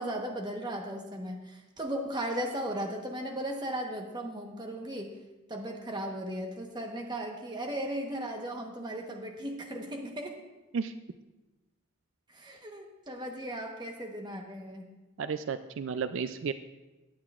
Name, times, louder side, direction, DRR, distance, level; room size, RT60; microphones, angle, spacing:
voice 1, 0.0-5.1 5.5-10.3 12.3-14.9, right 1 dB, 20° right, 2 dB, 1.1 m, -36 dB
voice 2, 15.2-16.5, right 6 dB, 70° right, 11 dB, 0.4 m, -32 dB
17.0 x 9.3 x 2.4 m, 1.1 s
head